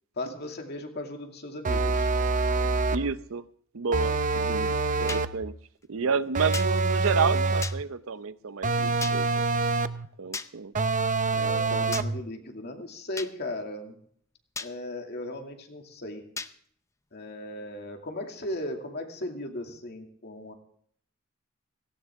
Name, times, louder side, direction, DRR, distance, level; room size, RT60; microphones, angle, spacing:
voice 1, 0.2-2.1 5.9-6.1 11.3-14.0 14.6-16.2 17.1-20.5, left 1 dB, 55° left, 3 dB, 2.4 m, -37 dB
sound 1, 1.6-3.1 3.9-5.4 6.3-7.8 8.6-10.1 10.7-12.2, right 3 dB, 40° right, 0.6 m, -26 dB
voice 2, 2.9-3.5 3.7-5.5 5.9-9.5 10.2-10.7, right 5 dB, 80° right, 14 dB, 0.7 m, -30 dB
sound 2, 5.1-5.2 6.5-6.7 7.6-7.8 9.0-9.2 10.3-10.5 11.9-12.1 13.2-13.3 14.6-14.7 16.4-16.5, left 4 dB, 15° left, 0.6 m, -34 dB
17.5 x 16.5 x 3.6 m, 0.62 s
head